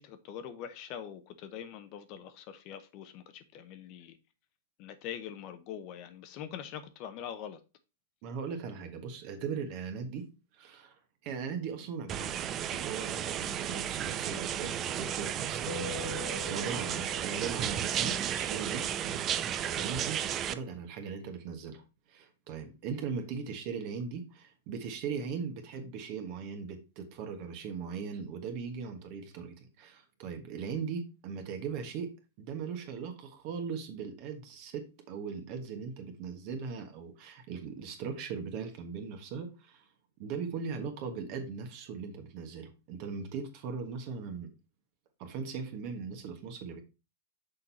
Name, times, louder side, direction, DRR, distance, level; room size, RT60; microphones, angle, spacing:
voice 1, 0.0-4.2 4.8-7.6, left 9 dB, 40° left, 0.8 m, -43 dB
voice 2, 8.2-10.3 10.5-10.9 11.2-19.2 19.5-32.1 32.4-39.8 40.2-44.5 45.2-46.8, right 6 dB, 45° right, 1.4 m, -39 dB
sound 1, 12.1-20.5, right 10 dB, 25° right, 0.4 m, -33 dB
Keyboard (musical), 15.7-18.2, left 11 dB, 70° left, 0.5 m, -44 dB
6.4 x 4.4 x 4.3 m
hypercardioid pair, 140°, 0 cm